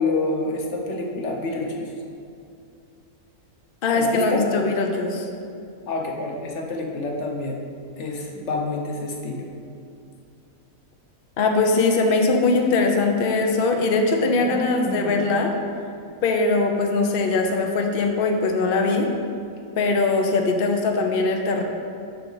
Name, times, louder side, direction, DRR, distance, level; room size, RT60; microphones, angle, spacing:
voice 1, 0.0-1.9 3.9-4.4 5.9-7.6 8.0-9.5 14.2-15.2, left 3 dB, 50° left, 0 dB, 1.0 m, -28 dB
voice 2, 3.8-5.3 11.4-15.5 16.2-19.1 19.8-21.6, left 3 dB, 80° left, 3 dB, 0.5 m, -21 dB
7.1 x 5.9 x 3.9 m, 2.5 s
omnidirectional pair, 1.8 m